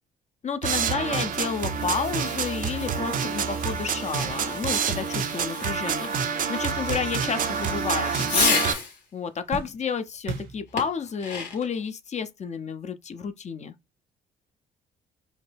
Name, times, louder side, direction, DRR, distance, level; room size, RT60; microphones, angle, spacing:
voice 1, 0.4-8.6 9.1-13.7, left 6 dB, 35° left, 0.5 m, -31 dB
sound 1, 0.6-8.7, right 6 dB, 40° right, 0.5 m, -28 dB
Fireworks, 1.3-9.0 10.8-11.8, left 5 dB, 85° left, 0.7 m, -33 dB
sound 2, 3.9-7.7 8.0-8.7 9.0-11.1 11.8-11.9 13.2-13.4, right 5 dB, 65° right, 0.8 m, -41 dB
2.8 x 2.1 x 3.2 m
hypercardioid pair, 45°, 21 cm